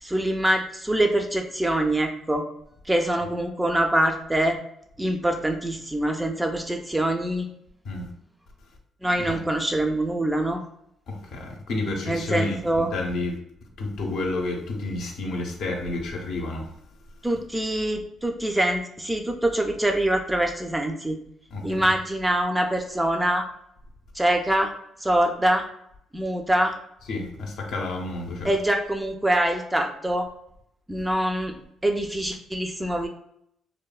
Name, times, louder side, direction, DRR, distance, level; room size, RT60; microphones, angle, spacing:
voice 1, 0.0-2.4 2.9-4.6 5.0-7.5 9.0-10.6 12.1-12.9 17.2-21.2 21.6-23.5 24.2-24.7 25.0-25.6 26.1-26.7 28.4-30.3 30.9-31.5 31.8-33.1, right 1 dB, 10° right, 4 dB, 0.3 m, -24 dB
voice 2, 11.1-13.4 13.8-16.7 21.5-21.6 27.1-28.5, left 2 dB, 75° left, 1 dB, 0.6 m, -30 dB
3.1 x 2.1 x 2.3 m, 0.73 s
cardioid pair, 120°, 0 cm